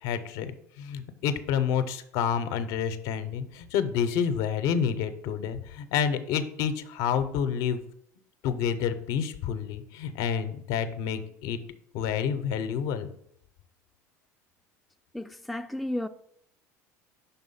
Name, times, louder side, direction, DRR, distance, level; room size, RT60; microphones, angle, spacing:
voice 1, 0.0-7.8 8.4-11.6 11.9-13.1, left 8 dB, 65° left, 0.6 m, -29 dB
voice 2, 15.1-16.1, left 1 dB, ahead, 0.3 m, -33 dB
5.7 x 3.7 x 5.5 m
hypercardioid pair, 75°, 9 cm